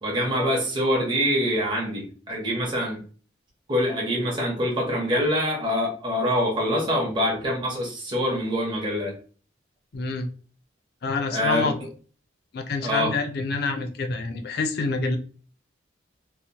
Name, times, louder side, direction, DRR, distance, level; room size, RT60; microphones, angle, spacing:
voice 1, 0.0-3.0 3.7-9.1 11.3-11.7 12.8-13.1, equal, 25° right, -3 dB, 0.8 m, -25 dB
voice 2, 9.9-10.3 11.0-11.7 12.5-15.2, left 3 dB, 55° left, 6 dB, 0.4 m, -27 dB
2.8 x 2.0 x 2.7 m, 0.39 s
head